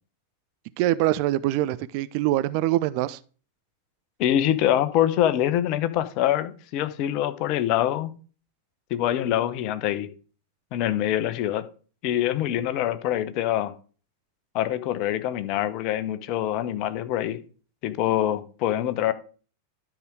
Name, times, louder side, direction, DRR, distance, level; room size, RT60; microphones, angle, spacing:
voice 1, 0.8-3.2, right 15 dB, 45° right, 0.5 m, -24 dB
voice 2, 4.2-8.1 8.9-10.1 10.7-11.7 12.0-13.7 14.5-17.4 17.8-19.1, left 12 dB, 40° left, 0.8 m, -25 dB
12.0 x 4.9 x 4.7 m
figure-of-eight pair, 90°, 0 cm